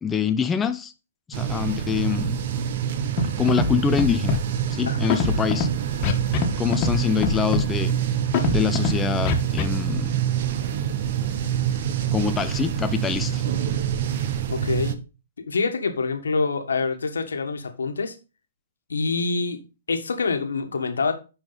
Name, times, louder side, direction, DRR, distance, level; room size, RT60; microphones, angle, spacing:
voice 1, 0.0-0.9 1.3-2.4 3.2-4.4 4.7-5.7 6.6-7.9 8.5-10.2 12.1-13.4, left 7 dB, 15° left, 0.5 m, -25 dB
sound 1, 1.3-15.0, right 9 dB, 50° right, 1.0 m, -26 dB
Scratching (performance technique), 3.2-3.3 3.5-3.7 4.0-4.4 5.1-5.7 6.0-6.5 6.7-7.0 7.2-7.6 8.3-8.9 9.3-9.6, left 5 dB, 35° left, 1.5 m, -22 dB
voice 2, 14.5-15.0 15.5-18.2 18.9-19.6 19.9-21.1, left 4 dB, 80° left, 1.5 m, -26 dB
10.5 x 4.4 x 4.0 m
hypercardioid pair, 125°, 0 cm